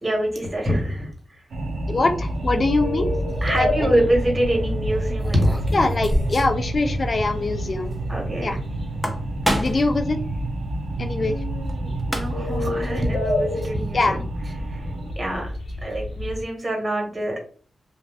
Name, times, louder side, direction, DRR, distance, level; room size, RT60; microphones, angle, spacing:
voice 1, 0.0-1.4 3.4-5.8 8.1-8.6 9.7-9.8 11.2-14.2 14.6-15.5 15.8-17.4, right 1 dB, 30° right, 0 dB, 1.2 m, -25 dB
sound 1, 1.5-15.1, right 2 dB, 85° right, 0.5 m, -30 dB
voice 2, 1.9-3.1 3.6-3.7 5.7-7.9 8.4-8.6 9.6-10.2 11.0-11.4 13.9-14.2, left 3 dB, 45° left, 7 dB, 0.3 m, -23 dB
sound 2, 2.3-16.4, left 1 dB, 75° left, 0.7 m, -31 dB
sound 3, 3.6-3.7 5.2-6.6 6.9-7.0 7.3-7.4 8.8-9.9 11.7-11.8 12.0-12.6, equal, ahead, 0.8 m, -26 dB
2.5 x 2.1 x 3.3 m, 0.43 s
cardioid pair, 60°, 0 cm